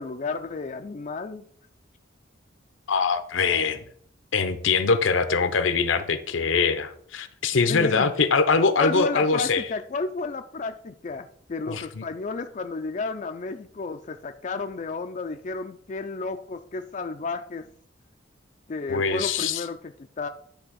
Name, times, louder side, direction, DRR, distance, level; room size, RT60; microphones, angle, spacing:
voice 1, 0.0-1.4 7.7-8.1 8.8-17.7 18.7-19.8 20.2-20.3, left 4 dB, 40° left, 7 dB, 0.4 m, -32 dB
voice 2, 2.9-3.8 4.3-9.6 11.7-12.0 18.9-19.6, left 4 dB, 80° left, 10 dB, 0.8 m, -23 dB
10.0 x 3.4 x 6.3 m, 0.62 s
head